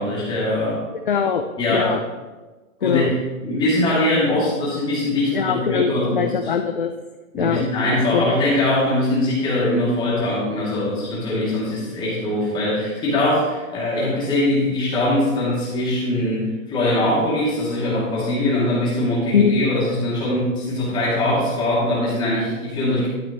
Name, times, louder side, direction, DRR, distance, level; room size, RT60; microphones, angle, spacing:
voice 1, 0.0-0.9 1.6-1.9 2.8-6.3 7.3-23.1, left 1 dB, 10° left, -7 dB, 2.7 m, -22 dB
voice 2, 0.9-2.0 2.8-3.1 5.3-6.9 7.4-7.6 8.1-8.3 19.3-19.5, left 7 dB, 40° left, 6 dB, 0.4 m, -22 dB
12.0 x 9.1 x 3.1 m, 1.2 s
hypercardioid pair, 165°, 42 cm